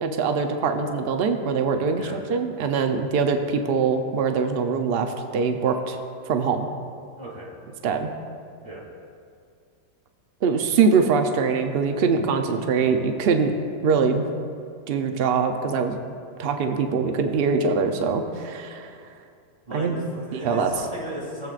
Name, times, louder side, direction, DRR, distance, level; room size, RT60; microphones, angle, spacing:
voice 1, 0.0-6.0 6.3-6.7 7.8-8.1 10.4-13.5 13.8-14.3 14.9-16.0 16.4-18.9 19.7-20.0 20.3-20.7, right 5 dB, 85° right, 5 dB, 0.5 m, -23 dB
voice 2, 19.7-21.5, right 1 dB, 30° right, -7 dB, 2.9 m, -36 dB
19.0 x 7.6 x 2.4 m, 2.3 s
omnidirectional pair, 1.8 m